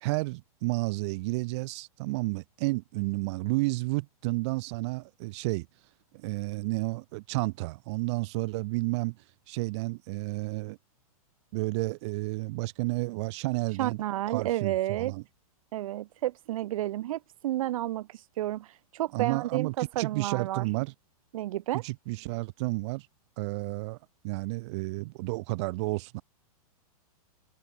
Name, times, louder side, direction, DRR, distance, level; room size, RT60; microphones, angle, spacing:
voice 1, 0.0-5.7 6.1-9.2 9.5-10.8 11.5-14.0 14.3-15.2 19.1-20.9 21.7-23.1 23.4-24.0 24.2-26.2, right 23 dB, 45° right, 1.5 m, -31 dB
voice 2, 13.8-15.1 15.7-18.1 18.4-18.7 18.9-20.7 21.3-21.8, right 14 dB, 60° right, 1.5 m, -31 dB
hypercardioid pair, 135°, 19 cm